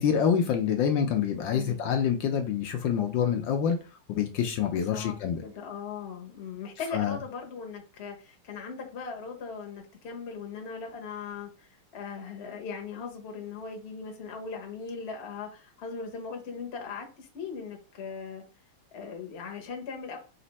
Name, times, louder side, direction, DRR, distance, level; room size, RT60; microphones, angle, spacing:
voice 1, 0.0-3.8 4.1-5.4 6.9-7.2, left 8 dB, 75° left, 1.3 m, -26 dB
voice 2, 1.5-1.8 4.7-18.4 18.9-20.2, left 5 dB, 45° left, 0.9 m, -39 dB
4.2 x 2.5 x 4.0 m
omnidirectional pair, 2.2 m